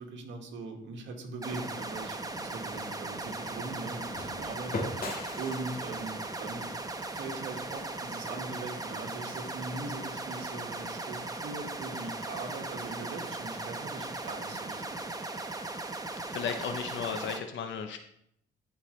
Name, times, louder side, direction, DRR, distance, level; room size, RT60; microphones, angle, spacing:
voice 1, 0.0-6.7 7.0-15.1, right 3 dB, 70° right, 2 dB, 1.8 m, -41 dB
sound 1, 1.4-17.4, right 2 dB, 20° right, 0.9 m, -38 dB
sound 2, 2.3-8.1, left 2 dB, 50° left, 1.8 m, -42 dB
voice 2, 16.3-18.0, left 7 dB, 70° left, 6 dB, 0.8 m, -35 dB
12.0 x 4.8 x 3.2 m, 0.71 s
cardioid pair, 90°, 20 cm